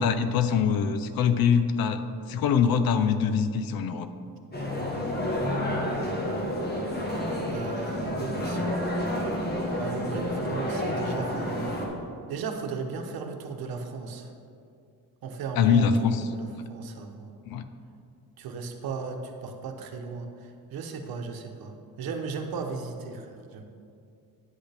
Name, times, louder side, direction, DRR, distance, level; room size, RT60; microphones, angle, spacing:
voice 1, 0.0-2.0 2.3-4.1 15.6-16.2 16.5-16.7 17.5-17.7, left 6 dB, 80° left, 10 dB, 0.6 m, -23 dB
sound 1, 4.5-11.9, left 1 dB, 25° left, 1.4 m, -29 dB
voice 2, 7.5-8.7 9.8-11.7 12.3-14.3 15.2-17.3 18.4-23.6, right 4 dB, 80° right, 4 dB, 1.0 m, -36 dB
9.6 x 8.0 x 3.4 m, 2.4 s
cardioid pair, 135°, 36 cm